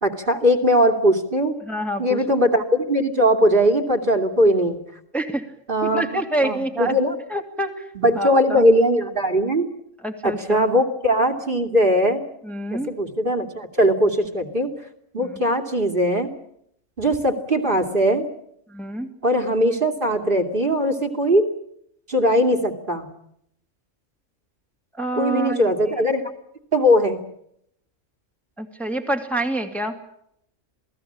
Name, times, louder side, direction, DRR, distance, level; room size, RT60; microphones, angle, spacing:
voice 1, 0.0-1.5 2.0-4.8 5.7-7.1 7.9-9.7 10.2-12.2 12.7-14.7 15.1-16.3 17.0-18.3 19.2-21.5 22.1-23.1 25.2-26.2 26.7-27.2, equal, 40° right, 9 dB, 2.8 m, -20 dB
voice 2, 1.6-2.2 5.1-5.5 5.8-7.0 7.3-7.9 8.2-8.6 10.0-10.7 12.4-12.9 15.2-15.4 18.7-19.1 25.0-25.7 28.6-30.0, right 1 dB, ahead, 4 dB, 2.4 m, -27 dB
28.0 x 18.5 x 8.7 m, 0.74 s
omnidirectional pair, 1.3 m